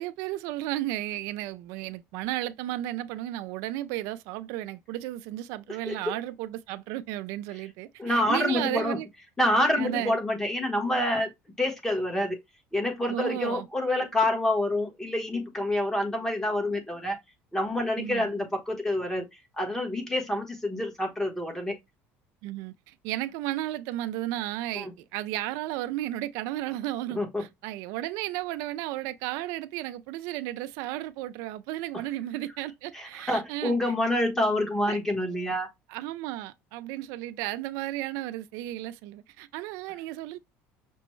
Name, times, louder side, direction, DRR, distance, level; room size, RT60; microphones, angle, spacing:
voice 1, 0.0-9.1 9.7-10.2 13.1-13.7 18.0-18.3 22.4-33.9 34.9-35.0 35.9-40.4, right 15 dB, 70° right, 0.3 m, -34 dB
voice 2, 5.7-6.1 8.0-9.0 9.4-11.3 11.6-12.4 12.7-17.2 17.5-21.8 24.7-24.9 27.1-27.4 32.9-35.7, left 1 dB, 10° left, 1.0 m, -27 dB
5.9 x 2.2 x 3.1 m
cardioid pair, 155°, 5 cm